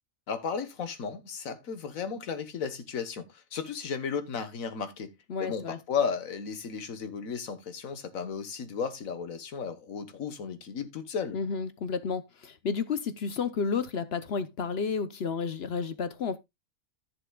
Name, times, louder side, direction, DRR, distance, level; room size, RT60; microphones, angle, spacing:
voice 1, 0.3-11.4, left 6 dB, 75° left, 1.6 m, -34 dB
voice 2, 5.3-5.8 11.3-16.4, left 5 dB, 55° left, 0.9 m, -31 dB
14.5 x 6.8 x 2.3 m
omnidirectional pair, 1.5 m